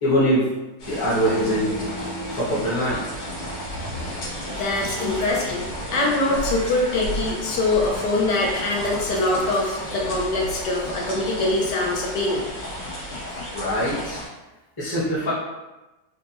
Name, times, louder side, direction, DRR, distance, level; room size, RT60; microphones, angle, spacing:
voice 1, 0.0-0.5 0.8-1.7 2.3-3.0 13.5-14.2 14.8-15.3, equal, 15° left, -9 dB, 0.8 m, -22 dB
sound 1, 0.8-14.3, equal, 90° left, 1.8 m, -33 dB
sound 2, 1.2-6.6, right 2 dB, 65° right, 0.9 m, -37 dB
Electric Engine II, 3.6-11.0, right 1 dB, 80° right, 1.4 m, -38 dB
voice 2, 4.6-5.7 5.9-12.4, left 2 dB, 75° left, -2 dB, 1.2 m, -23 dB
4.1 x 2.2 x 2.8 m, 1.1 s
omnidirectional pair, 1.9 m